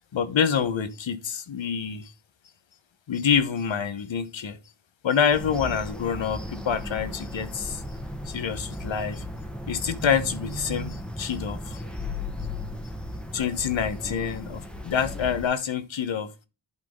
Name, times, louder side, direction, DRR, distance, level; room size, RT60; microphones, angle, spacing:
voice 1, 0.1-2.1 3.1-4.6 5.0-7.8 8.2-9.2 9.7-11.8 13.3-16.3, left 7 dB, 85° left, 1.1 m, -27 dB
sound 1, 5.3-15.5, left 1 dB, ahead, 1.5 m, -36 dB
11.0 x 4.1 x 3.7 m
cardioid pair, 60°, 45 cm